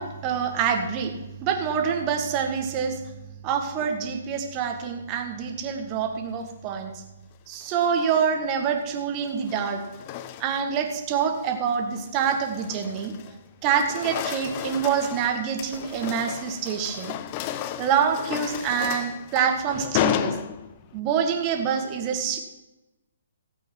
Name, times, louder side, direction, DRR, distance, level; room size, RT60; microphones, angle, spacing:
voice 1, 0.0-3.2 3.4-7.0 7.5-9.8 10.4-13.1 13.6-17.1 17.8-20.4 20.9-22.4, right 7 dB, 30° right, 4 dB, 1.8 m, -26 dB
sound 1, 7.6-8.1 9.2-10.8 11.2-11.5 12.0-13.4 13.7-21.0, left 11 dB, 35° left, 0.6 m, -33 dB
16.0 x 8.5 x 4.7 m, 1.0 s
figure-of-eight pair, 130°, 0 cm